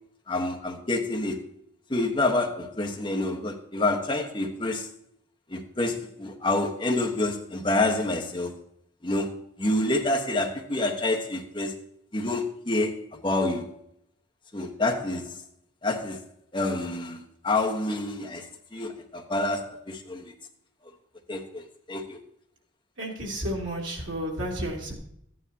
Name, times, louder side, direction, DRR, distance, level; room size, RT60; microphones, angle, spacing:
voice 1, 0.3-1.4 1.9-4.9 5.5-8.5 9.0-11.8 12.1-13.8 14.5-15.3 15.8-16.2 16.5-20.3 21.3-22.2, left 2 dB, 25° left, 1 dB, 1.1 m, -28 dB
voice 2, 23.0-24.9, equal, 75° right, -2 dB, 2.8 m, -32 dB
13.5 x 9.7 x 2.8 m, 0.72 s
head